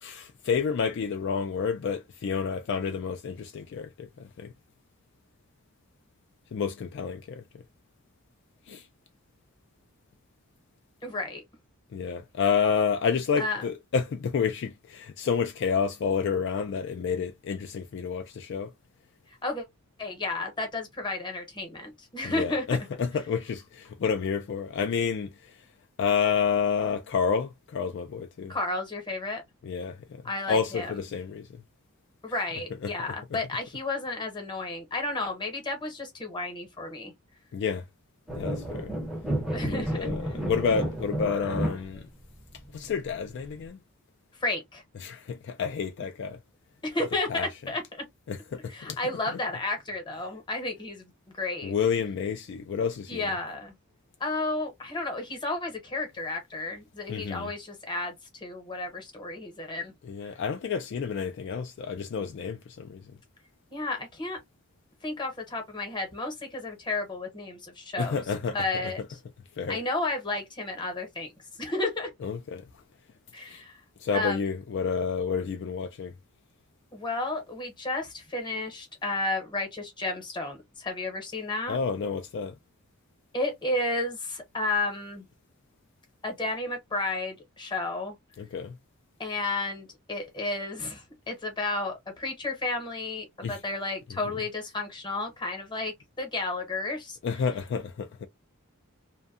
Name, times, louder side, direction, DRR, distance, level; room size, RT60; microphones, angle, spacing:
voice 1, 0.0-4.5 6.5-7.4 8.7-8.8 11.9-18.7 22.2-25.5 26.0-28.5 29.6-30.2 30.5-31.5 32.8-32.9 37.5-37.8 38.3-38.9 39.7-42.1 42.7-43.8 45.0-46.4 47.3-47.5 48.3-49.0 49.3-49.4 51.6-53.3 57.1-57.5 60.1-63.0 68.0-68.6 68.8-68.9 69.6-69.8 72.2-72.6 73.5-73.6 74.0-76.1 81.7-82.5 88.4-88.8 93.4-93.6 97.2-98.3, left 6 dB, 55° left, 0.3 m, -29 dB
voice 2, 11.0-11.4 13.4-13.6 19.3-19.6 20.0-22.6 28.5-29.4 30.2-30.9 32.2-37.1 39.5-40.4 44.4-44.8 46.8-47.8 48.7-51.7 53.1-53.7 54.2-59.9 63.7-64.4 65.0-68.2 68.5-69.2 69.7-71.3 71.6-72.1 73.3-73.8 74.1-74.4 76.9-81.8 83.3-85.2 86.2-88.1 89.2-97.2, left 2 dB, 20° left, 0.9 m, -32 dB
sound 1, 38.3-43.7, right 1 dB, ahead, 0.6 m, -32 dB
2.6 x 2.2 x 2.4 m
head